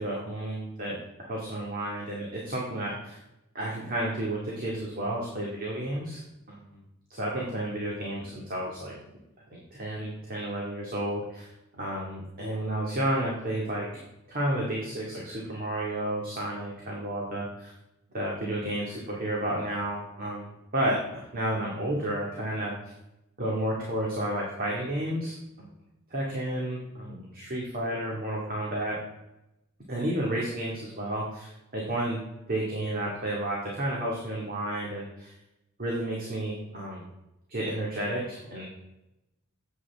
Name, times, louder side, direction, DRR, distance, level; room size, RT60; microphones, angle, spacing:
voice 1, 0.0-3.2 3.5-6.2 6.5-6.6 7.1-8.9 9.5-14.0 14.3-17.7 18.1-22.7 23.4-25.7 26.1-29.0 29.9-32.2 32.5-35.3 35.8-37.0 37.5-38.7, right 1 dB, 45° right, -3 dB, 2.2 m, -31 dB
14.0 x 9.5 x 3.6 m, 0.92 s
head